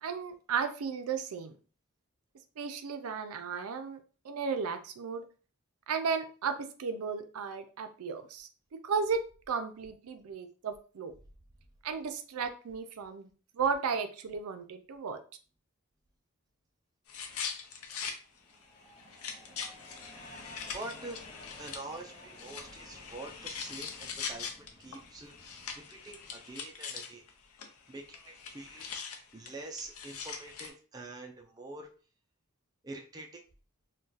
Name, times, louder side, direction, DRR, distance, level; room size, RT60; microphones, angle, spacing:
voice 1, 0.0-1.6 2.6-5.2 5.9-11.1 11.8-15.2, right 5 dB, 80° right, 8 dB, 0.4 m, -35 dB
sound 1, 17.1-18.2 18.5-18.6 19.0-27.3 27.6-27.7 27.9-30.7, left 6 dB, 80° left, 0.5 m, -42 dB
sound 2, 18.2-26.9, left 1 dB, 25° left, 0.8 m, -54 dB
voice 2, 20.7-21.2 21.6-27.2 27.9-31.9 32.8-33.3, right 2 dB, 15° right, 1 dB, 0.4 m, -46 dB
2.4 x 2.2 x 3.9 m, 0.37 s
head